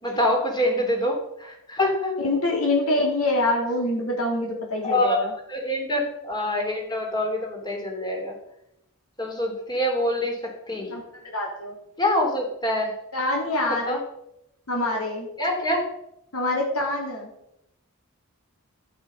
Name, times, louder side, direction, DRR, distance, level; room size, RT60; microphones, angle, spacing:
voice 1, 0.0-2.1 4.8-5.2 5.5-8.3 9.2-10.3 10.7-10.9 12.0-12.9 13.5-14.0 15.4-15.8, left 1 dB, 20° left, 2 dB, 3.1 m, -25 dB
voice 2, 2.2-5.3 10.9-11.8 13.1-14.0 14.7-15.3 16.3-17.3, left 2 dB, 75° left, 0 dB, 3.3 m, -25 dB
11.5 x 9.4 x 5.5 m, 0.80 s
head